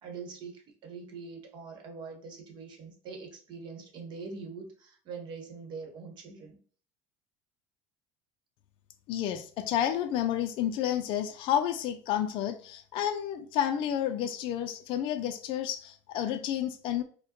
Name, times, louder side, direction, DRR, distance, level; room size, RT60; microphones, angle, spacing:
voice 1, 0.0-6.6, right 4 dB, 45° right, 3 dB, 1.0 m, -43 dB
voice 2, 9.1-17.0, left 10 dB, 50° left, 8 dB, 0.4 m, -30 dB
4.6 x 2.2 x 2.9 m, 0.44 s
cardioid pair, 140°, 11 cm